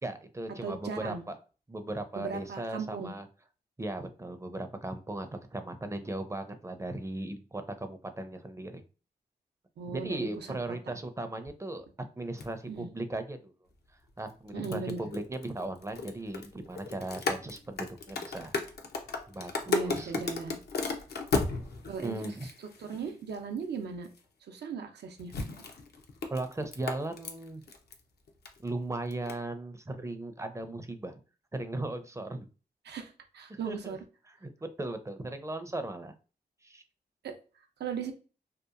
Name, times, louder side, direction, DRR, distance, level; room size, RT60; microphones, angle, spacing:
voice 1, 0.0-1.4 1.7-3.3 3.8-8.8 9.9-11.9 12.2-13.5 14.2-18.5 19.3-20.2 22.0-22.5 26.3-27.6 28.6-31.1 31.5-32.5 33.5-34.0 34.4-34.5 34.8-36.1 36.6-36.8, right 2 dB, 15° right, 8 dB, 0.4 m, -37 dB
voice 2, 0.6-1.2 2.2-3.1 9.8-10.6 10.9-11.0 12.7-12.9 14.5-15.1 19.7-20.6 21.8-24.1 24.5-25.3 32.8-34.0 37.2-37.3 37.8-38.1, right 5 dB, 85° right, 5 dB, 0.5 m, -38 dB
sound 1, 12.4-12.5 14.2-23.4 24.0-24.2 25.2-28.0 28.3-28.7 29.1-29.3, left 4 dB, 70° left, 0.5 m, -35 dB
2.8 x 2.4 x 2.4 m, 0.35 s
cardioid pair, 50°, 17 cm